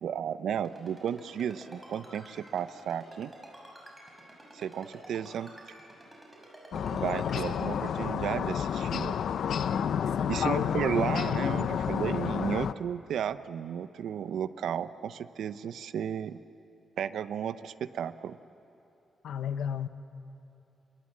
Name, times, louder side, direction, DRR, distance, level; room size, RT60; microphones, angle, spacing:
voice 1, 0.0-3.3 4.5-5.5 6.9-9.2 10.3-16.4 17.0-18.4, right 8 dB, 80° right, 13 dB, 0.7 m, -33 dB
Ringtone, 0.6-7.5, right 1 dB, 10° right, 5.5 m, -49 dB
sound 1, 6.7-12.7, left 8 dB, 65° left, 0.6 m, -30 dB
voice 2, 10.2-10.8 19.2-19.9, left 8 dB, 90° left, 11 dB, 1.0 m, -32 dB
28.5 x 26.0 x 7.4 m, 2.8 s
wide cardioid pair, 175°, 0 cm